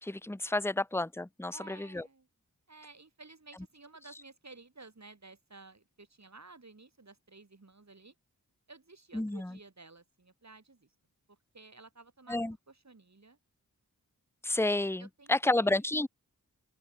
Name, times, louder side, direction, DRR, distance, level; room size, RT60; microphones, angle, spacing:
voice 1, 0.0-2.0 9.1-9.6 12.3-12.5 14.4-16.1, left 2 dB, 5° left, 1.0 m, -30 dB
voice 2, 1.5-2.3 2.7-8.1 8.7-10.9 11.3-13.4 15.0-15.8, right 3 dB, 50° right, 7.5 m, -54 dB
open air
wide cardioid pair, 55°, 35 cm